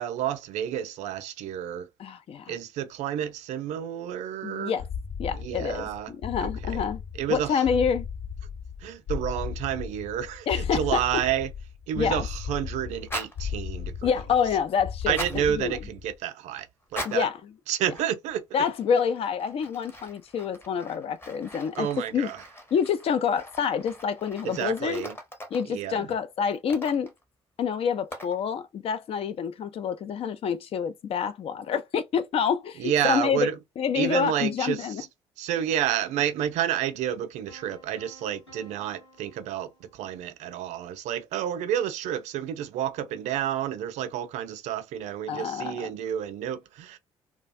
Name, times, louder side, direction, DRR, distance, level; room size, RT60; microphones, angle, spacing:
voice 1, 0.0-1.9 2.5-4.7 5.3-6.1 6.4-6.9 7.2-7.6 8.8-11.5 11.9-14.1 15.1-16.7 16.9-17.3 17.7-18.4 21.8-22.4 24.4-25.1 25.6-26.1 32.8-33.5 33.9-35.1 35.4-47.0, right 10 dB, 60° right, 0.4 m, -30 dB
voice 2, 2.0-2.5 4.4-4.9 5.2-7.0 7.3-8.1 10.5-11.0 12.0-12.3 14.0-15.8 17.0-17.4 18.5-21.9 22.1-22.3 22.7-25.0 25.5-27.1 27.6-33.5 33.8-35.0 45.3-45.9, left 7 dB, 45° left, 0.4 m, -27 dB
sound 1, 4.8-16.1, left 7 dB, 65° left, 1.0 m, -36 dB
sound 2, 13.0-13.4 15.0-15.4 16.8-17.3 17.9-18.4 18.6-25.7 26.5-27.2 28.1-28.4, left 1 dB, 15° left, 0.8 m, -41 dB
sound 3, 37.5-40.4, right 1 dB, 90° left, 0.9 m, -54 dB
2.3 x 2.1 x 2.5 m
figure-of-eight pair, 45°, 14 cm